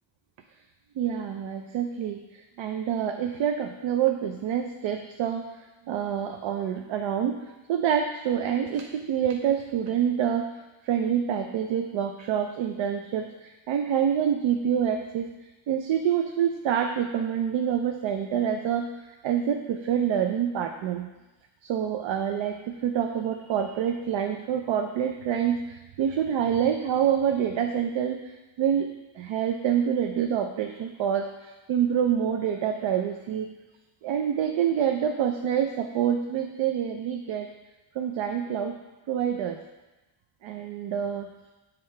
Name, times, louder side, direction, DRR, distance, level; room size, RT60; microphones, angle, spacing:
voice 1, 1.0-2.2 2.6-5.5 5.9-7.4 7.7-10.5 10.8-15.3 15.7-18.9 19.2-21.1 21.6-28.2 28.6-28.9 29.2-33.5 34.0-37.5 38.0-38.8 39.1-39.6 40.4-41.3, right 9 dB, 70° right, 5 dB, 0.5 m, -26 dB
7.6 x 3.7 x 4.4 m, 1.1 s
cardioid pair, 135°, 48 cm